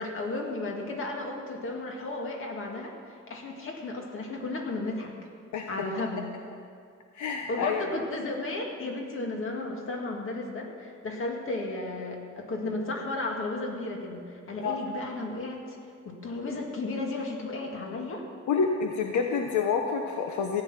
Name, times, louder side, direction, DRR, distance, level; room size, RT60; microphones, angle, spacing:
voice 1, 0.0-5.1 5.7-6.3 7.5-15.8 16.0-18.2, left 2 dB, 45° left, 1 dB, 1.9 m, -34 dB
voice 2, 7.1-7.9 14.6-14.8 18.5-20.6, left 5 dB, 70° left, 3 dB, 0.9 m, -28 dB
14.5 x 9.5 x 5.9 m, 2.2 s
cardioid pair, 175°, 30 cm